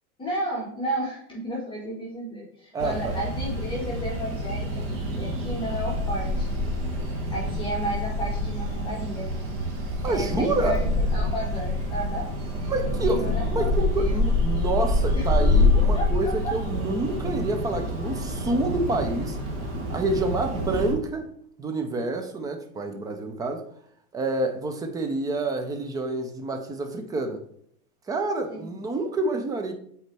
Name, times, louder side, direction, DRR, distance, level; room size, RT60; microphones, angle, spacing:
voice 1, 0.2-6.5 7.3-9.3 10.1-10.8 11.1-12.3 13.0-14.2 15.1-16.6 20.8-20.9 22.9-23.2 28.5-28.7, right 1 dB, 10° left, -6 dB, 1.9 m, -33 dB
voice 2, 2.7-3.2 10.0-10.8 12.7-13.3 13.5-19.4 19.9-21.3 21.6-23.6 24.1-27.4 28.1-29.7, right 2 dB, 10° right, 6 dB, 0.5 m, -28 dB
sound 1, 2.8-20.9, left 2 dB, 35° right, 1.8 m, -26 dB
8.0 x 4.2 x 3.4 m, 0.65 s
supercardioid pair, 135°, 43 cm